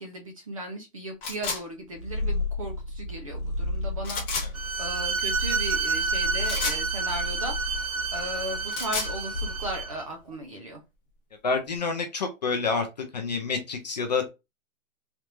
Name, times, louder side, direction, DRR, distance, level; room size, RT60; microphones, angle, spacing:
voice 1, 0.0-10.8, right 1 dB, 25° right, 3 dB, 0.5 m, -37 dB
sound 1, 1.2-1.6 4.0-4.5 6.4-6.8 8.5-9.1, left 4 dB, 15° left, 0.9 m, -31 dB
Purr, 1.9-10.0, left 2 dB, 55° left, 1.1 m, -33 dB
Bowed string instrument, 4.5-10.0, right 5 dB, 80° right, 1.0 m, -30 dB
voice 2, 11.4-12.9 13.1-14.3, left 4 dB, 35° left, 5 dB, 0.4 m, -28 dB
3.4 x 2.4 x 2.9 m, 0.24 s
hypercardioid pair, 165°, 41 cm